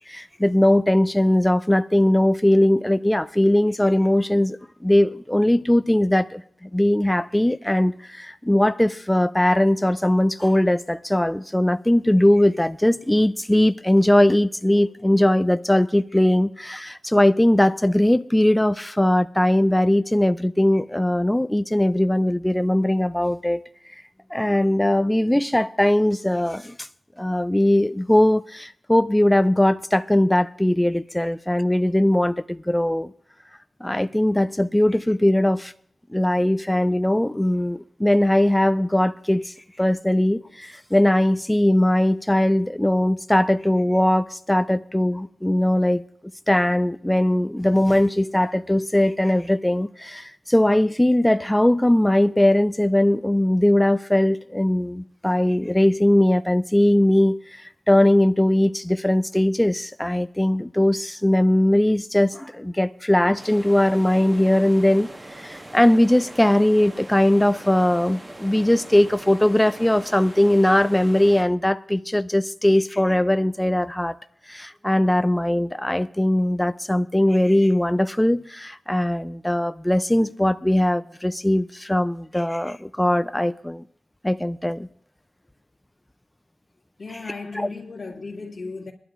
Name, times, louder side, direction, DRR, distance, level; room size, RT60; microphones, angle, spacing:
voice 1, 0.1-23.6 24.3-26.9 27.2-33.1 33.8-35.7 36.1-46.0 46.5-65.1 65.4-74.2 74.5-83.8 84.2-84.9 87.5-87.7, left 1 dB, 10° left, 0.4 m, -20 dB
sound 1, 63.4-71.4, right 1 dB, 30° right, 1.2 m, -41 dB
voice 2, 87.0-88.9, left 3 dB, 65° left, 2.0 m, -35 dB
21.5 x 12.0 x 2.4 m
cardioid pair, 55°, 0 cm